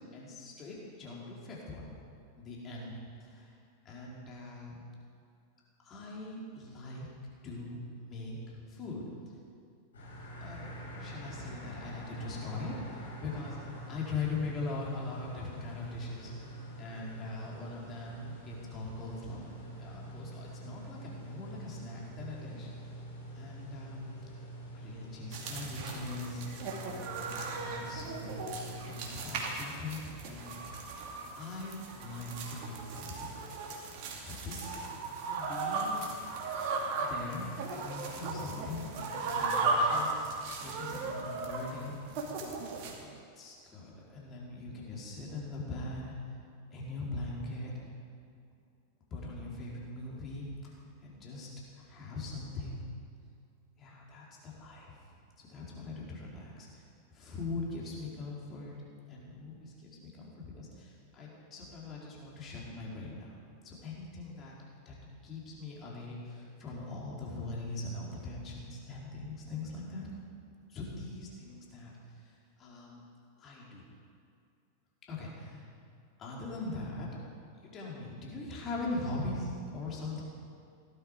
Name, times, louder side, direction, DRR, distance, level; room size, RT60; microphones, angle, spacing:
voice 1, 0.1-2.0 2.4-3.6 3.8-4.8 5.8-7.1 7.4-9.0 10.4-19.4 19.8-22.7 23.3-24.1 24.7-26.4 27.1-30.0 30.2-30.8 31.3-33.4 34.2-34.7 35.2-36.1 36.6-36.7 37.0-42.0 43.4-46.3 46.7-47.7 49.1-50.7 51.0-51.5 51.7-52.8 53.8-56.8 57.1-58.8 59.1-63.4 63.6-64.5 64.9-65.0 65.2-70.1 70.7-73.0 73.4-73.8 75.1-75.7 76.2-77.1 77.6-80.2, left 3 dB, 30° left, -4 dB, 4.1 m, -41 dB
sound 1, 9.9-29.3, right 1 dB, 65° left, 4.6 m, -45 dB
sound 2, 25.3-42.9, right 3 dB, 45° right, 2.4 m, -36 dB
17.0 x 12.5 x 5.0 m, 2.4 s
figure-of-eight pair, 90°, 0 cm